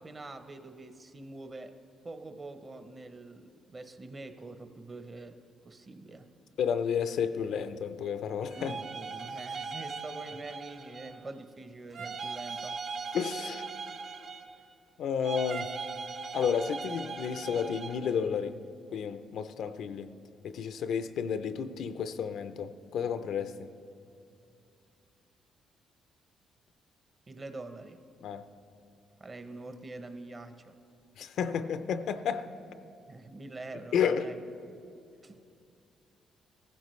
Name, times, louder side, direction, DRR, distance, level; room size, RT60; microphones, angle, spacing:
voice 1, 0.0-1.7 2.0-5.4 5.6-6.3 8.6-12.8 27.3-28.0 29.2-30.8 33.1-34.4 35.2-35.4, right 2 dB, 30° right, 0.8 m, -45 dB
voice 2, 6.6-8.7 13.1-13.7 15.0-15.7 16.3-18.6 18.9-20.1 20.4-23.7 28.2-28.4 31.2-32.5 33.9-34.3, left 7 dB, 75° left, 0.5 m, -31 dB
sound 1, 8.5-11.3 11.9-14.7 15.2-18.2, right 5 dB, 60° right, 0.8 m, -39 dB
15.0 x 14.5 x 3.2 m
cardioid pair, 90°, 0 cm